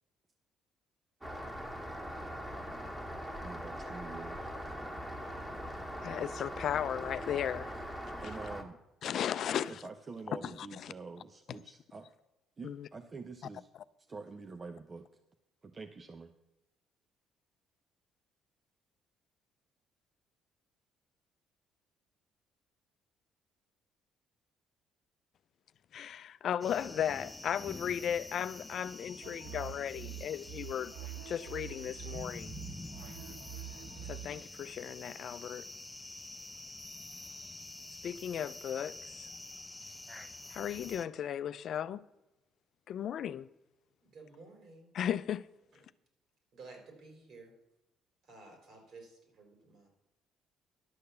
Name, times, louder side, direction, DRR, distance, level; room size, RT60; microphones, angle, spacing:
Rain, 1.2-8.6, equal, 15° right, 1.9 m, -41 dB
voice 1, 3.4-4.5 6.2-6.3 8.2-8.8 9.5-12.1 12.6-13.7 14.1-15.1 15.6-16.3, right 4 dB, 35° right, 0.7 m, -46 dB
voice 2, 6.0-7.7 9.0-9.8 12.6-12.9 25.9-30.9 31.3-32.5 34.1-35.7 38.0-39.3 40.5-42.0 42.9-43.5 44.9-45.4, left 9 dB, 60° left, 0.4 m, -36 dB
sound 1, 26.6-41.1, left 2 dB, 15° left, 0.6 m, -47 dB
sound 2, 29.2-34.5, right 16 dB, 80° right, 0.4 m, -46 dB
voice 3, 44.0-44.9 46.5-47.5 48.2-49.9, right 3 dB, 65° right, 4.1 m, -53 dB
11.5 x 6.6 x 7.0 m
supercardioid pair, 80°, 0 cm